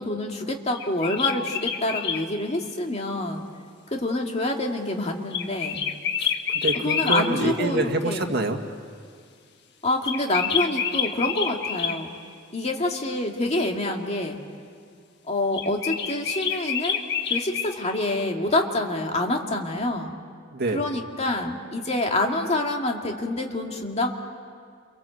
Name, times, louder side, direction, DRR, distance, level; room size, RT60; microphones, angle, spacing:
voice 1, 0.0-3.4 3.9-5.8 6.8-8.2 9.8-12.1 12.5-14.4 15.3-17.0 17.3-20.1 20.7-24.1, left 2 dB, 35° left, 2 dB, 2.3 m, -27 dB
sound 1, 0.7-2.2 5.3-7.3 10.0-12.0 15.5-17.7, left 7 dB, 60° left, 1.7 m, -27 dB
voice 2, 6.2-8.6 20.5-20.8, right 2 dB, 55° right, 4 dB, 2.0 m, -26 dB
29.5 x 23.5 x 8.0 m, 2.2 s
head